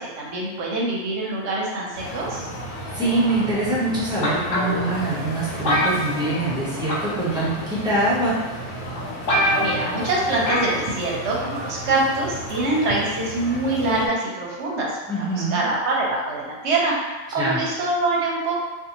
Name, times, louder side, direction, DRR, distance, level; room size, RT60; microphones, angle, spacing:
voice 1, 0.0-2.5 9.6-18.6, right 2 dB, 60° right, -3 dB, 0.8 m, -24 dB
sound 1, 1.9-14.1, right 1 dB, 90° left, 1.2 m, -33 dB
voice 2, 2.9-8.6 15.1-15.6 17.4-17.6, right 2 dB, 5° right, -8 dB, 0.3 m, -24 dB
sound 2, 4.2-4.9 5.6-6.6 6.9-7.2 8.0-8.1 8.7-8.8 9.0-9.1 9.3-9.9 10.5-10.8 11.1-11.2, equal, 60° left, 1.0 m, -23 dB
2.6 x 2.4 x 2.8 m, 1.3 s
omnidirectional pair, 1.5 m